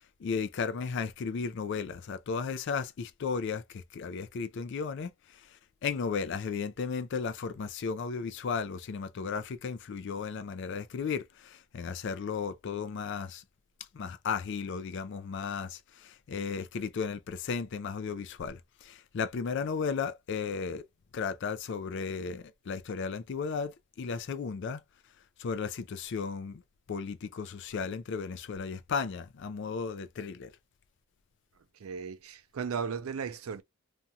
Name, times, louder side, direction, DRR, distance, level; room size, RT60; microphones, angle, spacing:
voice 1, 0.2-13.4 13.9-20.8 21.1-24.8 25.4-26.6 26.9-30.5, left 5 dB, 55° left, 0.4 m, -35 dB
voice 2, 31.7-33.6, right 6 dB, 75° right, 0.4 m, -36 dB
2.5 x 2.2 x 2.7 m
head